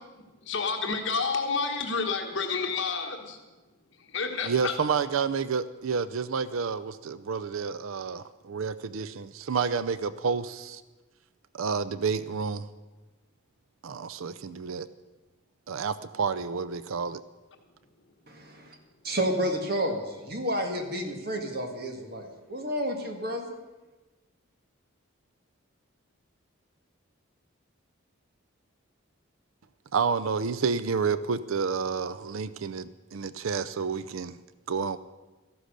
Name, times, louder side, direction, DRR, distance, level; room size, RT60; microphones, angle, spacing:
voice 1, 0.4-3.4 4.1-4.7, left 4 dB, 60° left, 3 dB, 1.3 m, -29 dB
voice 2, 4.4-10.8 11.5-12.7 13.8-14.9 15.7-17.2 29.9-34.4 34.7-35.0, right 5 dB, 80° right, 15 dB, 0.5 m, -30 dB
voice 3, 18.3-18.8 19.0-23.6, equal, 45° right, 3 dB, 1.9 m, -31 dB
14.0 x 11.5 x 6.6 m, 1.2 s
head